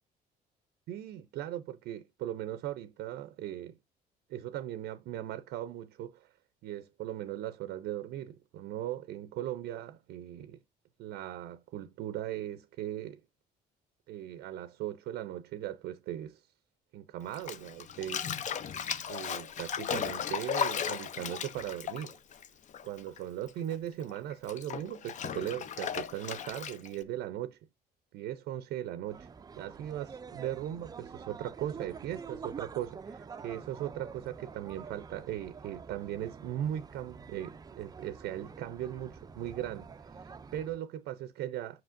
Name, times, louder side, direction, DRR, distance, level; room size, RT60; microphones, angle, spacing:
voice 1, 0.9-3.8 4.3-6.3 6.6-10.6 11.0-13.2 14.1-16.4 16.9-18.6 19.1-22.2 22.8-27.6 28.1-29.3 29.6-41.8, right 12 dB, 80° right, 0.6 m, -38 dB
Bathtub (filling or washing), 17.3-23.2 23.5-27.0, left 8 dB, 45° left, 0.7 m, -36 dB
sound 1, 29.0-40.8, right 5 dB, 20° right, 0.4 m, -47 dB
7.6 x 5.8 x 2.5 m
cardioid pair, 110°, 17 cm